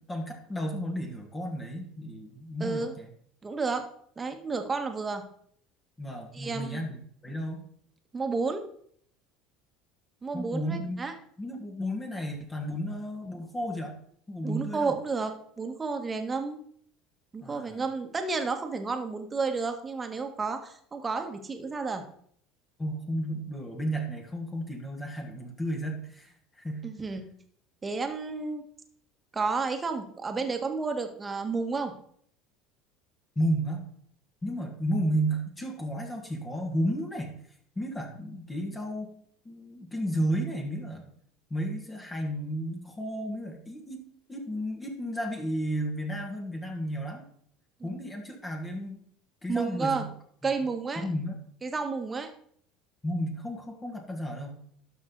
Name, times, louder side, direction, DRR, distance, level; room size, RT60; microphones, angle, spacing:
voice 1, 0.0-3.1 6.0-7.7 10.3-11.0 11.4-14.0 14.3-15.0 17.4-17.8 22.8-26.9 33.4-33.9 34.4-37.3 37.8-39.1 39.5-41.1 41.5-47.3 47.8-49.0 49.4-50.1 50.4-50.5 51.0-51.4 53.0-54.6, equal, 20° left, 2 dB, 1.9 m, -33 dB
voice 2, 2.6-2.9 3.4-3.8 4.2-5.2 6.3-6.8 8.1-8.7 10.2-11.1 14.4-16.6 17.3-22.0 26.8-27.3 27.8-28.6 29.3-31.9 47.8-48.0 49.5-50.1 50.4-51.1 51.6-52.3, right 4 dB, 25° right, 6 dB, 1.5 m, -31 dB
12.0 x 5.5 x 4.0 m, 0.62 s
hypercardioid pair, 80°, 0 cm